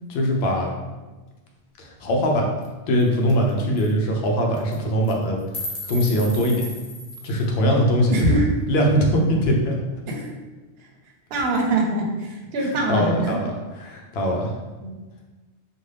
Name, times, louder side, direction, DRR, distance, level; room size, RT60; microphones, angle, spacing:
voice 1, 0.1-0.7 1.8-2.5 2.9-5.4 5.9-6.7 7.2-8.3 8.7-9.8 12.6-14.5, equal, 70° left, 0 dB, 0.8 m, -21 dB
sound 1, 2.6-2.7 3.0-3.1 3.3-3.5 3.8-3.9 4.5-4.8 5.1-7.4, left 1 dB, 55° left, 0.4 m, -35 dB
voice 2, 8.1-8.5 10.1-10.3 11.3-13.4 14.8-14.9, right 1 dB, 70° right, 0 dB, 0.8 m, -23 dB
2.5 x 2.2 x 3.2 m, 1.2 s
omnidirectional pair, 1.1 m